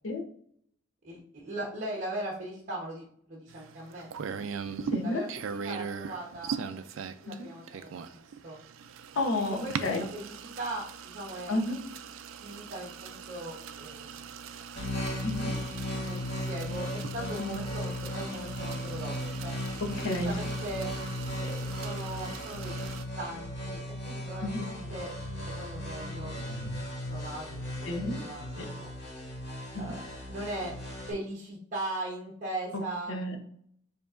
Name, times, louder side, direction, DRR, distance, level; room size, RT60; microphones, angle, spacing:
voice 1, 1.0-4.1 5.0-6.6 7.2-8.6 9.6-11.6 12.4-14.2 16.0-16.2 16.5-19.5 20.0-20.9 21.4-25.1 25.5-26.3 27.1-28.9 29.8-30.7 31.1-33.1, right 1 dB, 40° right, -3 dB, 0.9 m, -39 dB
sound 1, 3.5-23.0, right 6 dB, 75° right, 0.4 m, -41 dB
voice 2, 4.9-5.2 7.3-7.5 9.1-10.1 11.5-11.8 15.2-15.6 17.4-17.7 20.0-20.3 24.4-24.6 27.9-28.2 28.6-28.7 29.7-29.8 32.7-32.8 33.1-33.4, left 2 dB, 75° left, 3 dB, 0.8 m, -31 dB
sound 2, 14.7-31.1, left 1 dB, 55° left, 1.6 m, -36 dB
6.9 x 2.9 x 2.5 m, 0.65 s
head